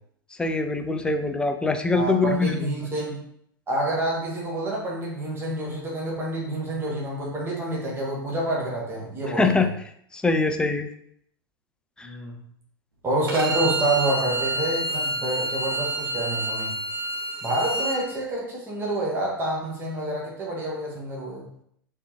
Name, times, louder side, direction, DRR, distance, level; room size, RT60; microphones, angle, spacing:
voice 1, 0.4-2.6 9.4-9.7 10.1-10.9 12.0-12.1, left 3 dB, 5° left, 6 dB, 0.4 m, -23 dB
voice 2, 1.9-3.2 3.7-9.7 12.0-12.4 13.0-16.7 17.4-21.4, right 1 dB, 20° right, -4 dB, 1.3 m, -28 dB
Bowed string instrument, 13.3-18.0, right 1 dB, 80° right, 0.8 m, -28 dB
3.6 x 3.3 x 3.0 m, 0.69 s
figure-of-eight pair, 95°, 12 cm